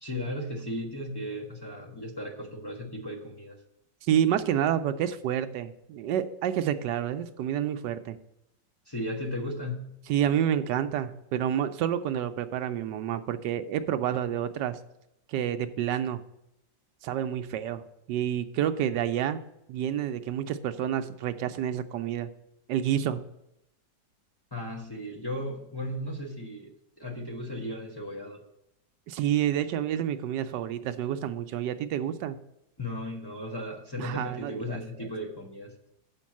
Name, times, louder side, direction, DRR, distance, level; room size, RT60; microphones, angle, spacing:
voice 1, 0.0-3.5 8.9-10.0 24.5-28.4 32.8-35.7, left 1 dB, 20° left, 0 dB, 0.7 m, -36 dB
voice 2, 4.0-8.2 10.1-14.8 15.3-16.2 17.0-17.8 18.1-19.4 19.7-22.3 22.7-23.2 29.1-32.4 34.0-35.1, right 10 dB, 75° right, 9 dB, 1.1 m, -29 dB
7.2 x 5.3 x 7.2 m, 0.84 s
omnidirectional pair, 2.0 m